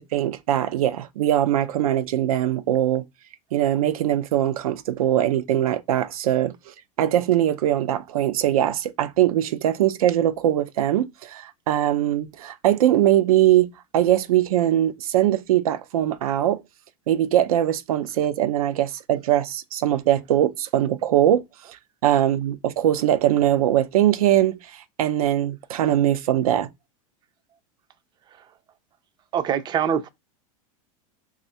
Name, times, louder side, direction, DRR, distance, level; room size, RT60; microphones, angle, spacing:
voice 1, 0.0-3.0 3.5-6.5 7.0-16.6 17.1-21.4 22.0-26.7, right 12 dB, 90° right, 0.5 m, -21 dB
voice 2, 29.3-30.1, right 8 dB, 25° right, 0.4 m, -23 dB
3.2 x 2.4 x 4.1 m
supercardioid pair, 120°, 18 cm